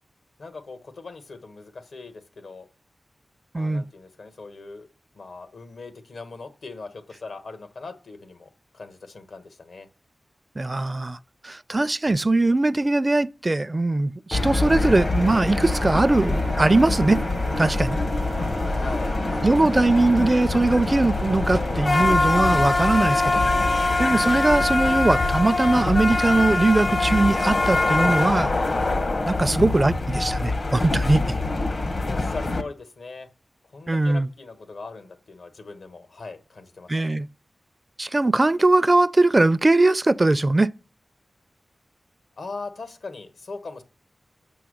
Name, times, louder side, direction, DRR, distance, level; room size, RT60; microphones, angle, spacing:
voice 1, 0.4-2.7 3.5-4.9 5.1-9.9 18.6-20.0 29.3-29.6 32.0-33.3 33.6-37.2 42.4-43.8, left 3 dB, 80° left, 1.2 m, -40 dB
voice 2, 10.6-11.2 11.4-17.2 17.6-18.0 19.4-23.4 24.0-28.5 29.3-31.2 33.9-34.3 36.9-37.3 38.0-40.7, right 2 dB, 35° right, 0.4 m, -20 dB
sound 1, 14.3-32.6, left 2 dB, 55° left, 0.9 m, -24 dB
Wind instrument woodwind instrument, 14.5-23.9, right 3 dB, 80° right, 0.7 m, -38 dB
7.0 x 6.2 x 6.3 m
cardioid pair, 45°, 0 cm